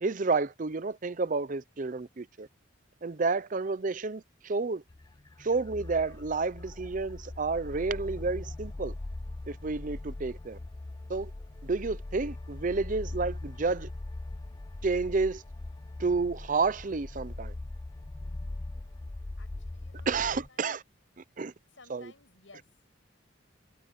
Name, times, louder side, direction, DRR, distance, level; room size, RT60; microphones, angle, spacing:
voice 1, 0.0-2.5 3.0-4.8 5.4-8.9 9.5-10.6 11.1-11.3 11.6-13.9 14.8-15.4 16.0-17.5 20.1-20.8 21.2-21.5 21.9-22.1, right 4 dB, 40° right, 0.6 m, -30 dB
sound 1, 4.9-20.5, left 2 dB, 20° left, 0.4 m, -41 dB
voice 2, 19.4-20.1 20.5-20.8 21.8-22.7, left 3 dB, 80° left, 5.8 m, -56 dB
head